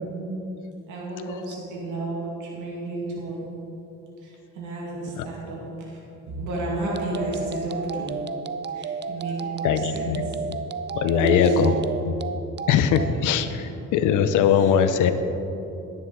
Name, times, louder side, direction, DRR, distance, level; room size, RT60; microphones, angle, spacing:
voice 1, 0.9-3.5 4.2-6.0 6.3-8.1 8.7-10.4 11.1-11.6 14.4-14.7, right 1 dB, 85° right, -3 dB, 2.1 m, -31 dB
sound 1, 6.9-13.1, right 5 dB, 35° right, 0.5 m, -32 dB
voice 2, 9.6-10.2 10.5-10.6 10.9-11.7 12.0-12.1 12.7-15.1, left 8 dB, 85° left, 10 dB, 0.7 m, -21 dB
11.0 x 9.5 x 3.9 m, 2.9 s
cardioid pair, 90°, 30 cm